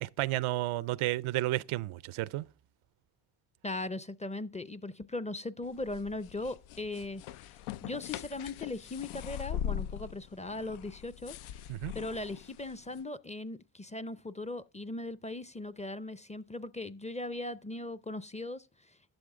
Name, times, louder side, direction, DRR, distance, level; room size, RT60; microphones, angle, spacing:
voice 1, 0.0-2.5 11.7-11.9, right 17 dB, 80° right, 0.6 m, -32 dB
voice 2, 3.6-7.2 7.8-11.4 11.9-19.0, left 2 dB, 15° left, 0.5 m, -39 dB
sound 1, 5.6-13.0, left 10 dB, 85° left, 0.5 m, -41 dB
11.5 x 6.6 x 3.7 m
supercardioid pair, 60°, 49 cm